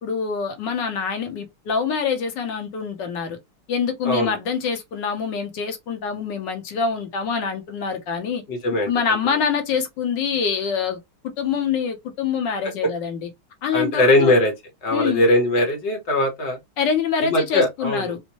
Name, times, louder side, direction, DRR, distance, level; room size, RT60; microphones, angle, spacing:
voice 1, 0.0-3.4 3.7-8.4 8.9-11.0 11.2-13.3 13.6-14.3 14.9-15.2 16.8-18.2, left 6 dB, 65° left, 1.2 m, -25 dB
voice 2, 4.0-4.4 8.5-8.9 13.7-14.5 14.8-16.6 17.2-18.1, left 1 dB, 45° left, 1.0 m, -20 dB
4.4 x 2.1 x 2.8 m
omnidirectional pair, 2.3 m